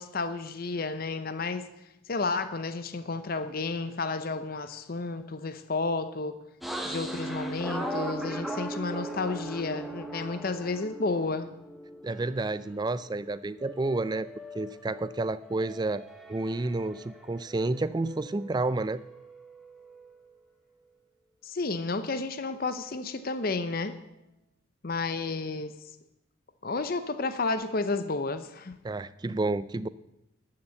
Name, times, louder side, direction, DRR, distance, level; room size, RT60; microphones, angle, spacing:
voice 1, 0.0-1.7 2.1-6.4 6.8-11.5 21.4-24.0 24.8-25.7 26.6-28.8, left 3 dB, 45° left, 11 dB, 0.6 m, -31 dB
sound 1, 6.6-12.6 13.0-17.2 17.5-20.1, right 1 dB, ahead, 1.1 m, -39 dB
voice 2, 12.0-14.3 14.5-16.0 16.3-19.0 28.8-29.9, right 2 dB, 20° right, 15 dB, 0.3 m, -30 dB
12.5 x 6.8 x 7.8 m, 0.87 s
head